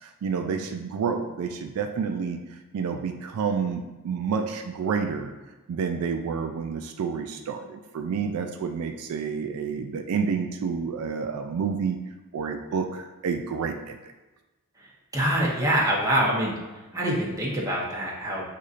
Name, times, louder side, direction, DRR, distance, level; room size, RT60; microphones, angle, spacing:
voice 1, 0.0-2.4 2.7-5.3 5.7-12.0 12.3-14.0, right 6 dB, 75° right, 5 dB, 0.3 m, -29 dB
voice 2, 15.1-16.5 16.9-18.4, right 1 dB, 15° right, -5 dB, 0.9 m, -25 dB
6.4 x 2.7 x 2.5 m, 1.1 s
head